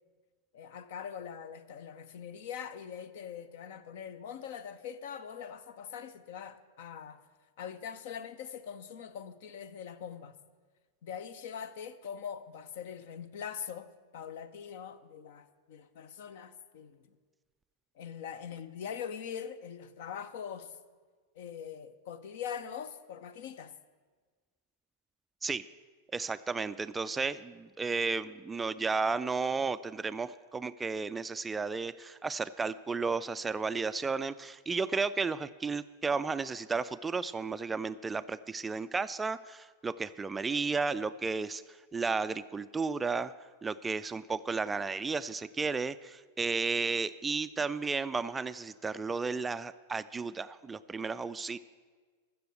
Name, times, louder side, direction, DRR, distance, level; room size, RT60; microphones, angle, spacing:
voice 1, 0.5-7.2 7.6-10.4 11.0-17.1 18.0-20.8 21.3-23.7, left 8 dB, 55° left, 0.7 m, -42 dB
voice 2, 26.1-43.3 43.6-51.6, right 4 dB, 15° right, 0.3 m, -33 dB
14.5 x 6.8 x 8.1 m
figure-of-eight pair, 90°, 0 cm